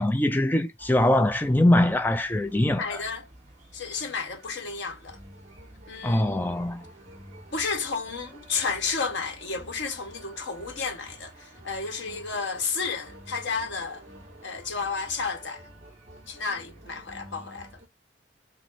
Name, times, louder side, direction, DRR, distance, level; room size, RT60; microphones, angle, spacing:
voice 1, 0.0-3.0 6.0-6.8, left 1 dB, 10° left, 0.4 m, -22 dB
sound 1, 0.8-17.9, right 1 dB, 35° right, 2.5 m, -49 dB
voice 2, 2.8-3.3 3.7-5.2 5.9-6.4 7.5-14.1 14.4-15.6 16.3-17.7, left 4 dB, 85° left, 1.3 m, -32 dB
6.0 x 2.1 x 4.1 m
head